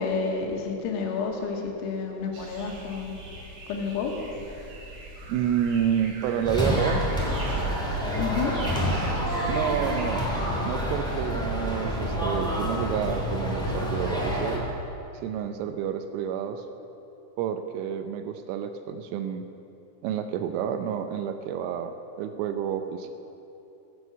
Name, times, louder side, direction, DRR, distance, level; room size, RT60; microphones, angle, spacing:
voice 1, 0.0-3.1 3.7-4.1 8.2-8.5, left 5 dB, 85° left, 1 dB, 4.1 m, -30 dB
sound 1, 2.3-10.2, right 2 dB, 55° right, 3.9 m, -41 dB
voice 2, 5.3-7.1 9.5-10.2 10.6-14.6 15.2-16.6 17.4-19.4 20.0-23.1, right 9 dB, 80° right, 7 dB, 3.1 m, -29 dB
sound 2, 6.4-14.6, equal, 5° left, 0.3 m, -28 dB
19.5 x 8.1 x 7.1 m, 2.9 s
omnidirectional pair, 5.9 m